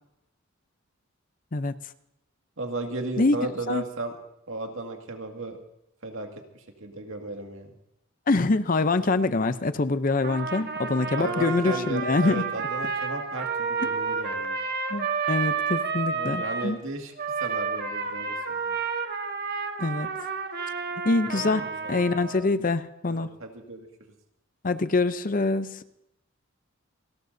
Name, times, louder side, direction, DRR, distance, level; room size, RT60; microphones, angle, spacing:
voice 1, 2.6-4.2 4.5-5.6 6.0-6.3 6.5-7.7 11.2-14.6 16.1-18.8 21.3-22.0 23.1-23.9, right 2 dB, 75° right, 3 dB, 2.1 m, -35 dB
voice 2, 8.3-12.5 14.9-16.8 19.8-20.1 21.0-23.3 24.6-25.8, left 3 dB, 40° left, 13 dB, 0.6 m, -25 dB
Trumpet, 10.2-16.7 17.2-22.5, right 5 dB, 50° right, 1.4 m, -30 dB
29.0 x 13.0 x 2.7 m, 0.80 s
head